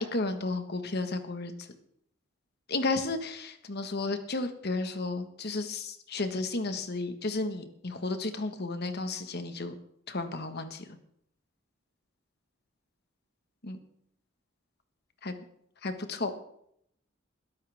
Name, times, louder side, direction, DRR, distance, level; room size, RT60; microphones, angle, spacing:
voice 1, 0.0-1.5 2.7-9.7 10.1-10.8 13.6-13.8 15.2-15.4 15.8-16.3, left 3 dB, 55° left, 8 dB, 1.5 m, -33 dB
21.0 x 11.5 x 3.6 m, 0.70 s
head